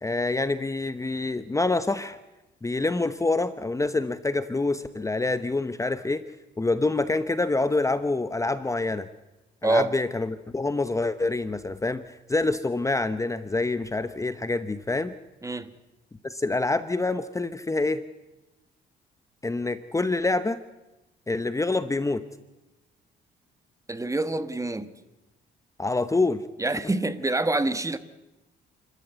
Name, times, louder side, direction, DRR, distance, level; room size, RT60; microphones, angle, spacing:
voice 1, 0.0-2.2 2.6-6.2 6.6-9.1 9.6-15.1 16.2-18.0 19.4-20.6 21.3-22.2 25.8-26.4, left 2 dB, 15° left, 0.9 m, -26 dB
voice 2, 23.9-24.9 26.6-28.0, right 2 dB, 15° right, 1.4 m, -26 dB
30.0 x 13.5 x 8.0 m
cardioid pair, 90°, 20 cm